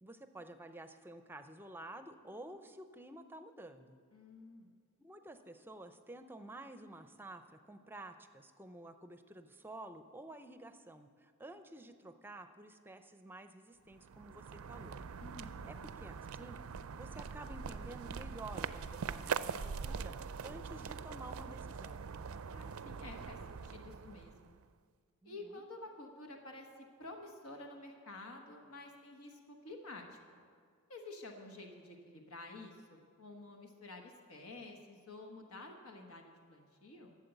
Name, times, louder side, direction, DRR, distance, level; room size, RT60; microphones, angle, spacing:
voice 1, 0.0-4.0 5.0-15.0 15.7-16.6 16.9-20.1 20.4-22.0 25.2-25.6, right 1 dB, 10° right, 8 dB, 0.5 m, -51 dB
voice 2, 4.1-4.7 15.2-15.7 22.5-24.6 25.2-26.7 27.0-30.4 30.9-37.2, left 2 dB, 85° left, 3 dB, 1.2 m, -50 dB
sound 1, 13.9-24.6, right 6 dB, 85° right, 0.4 m, -43 dB
12.0 x 7.6 x 7.9 m, 2.1 s
head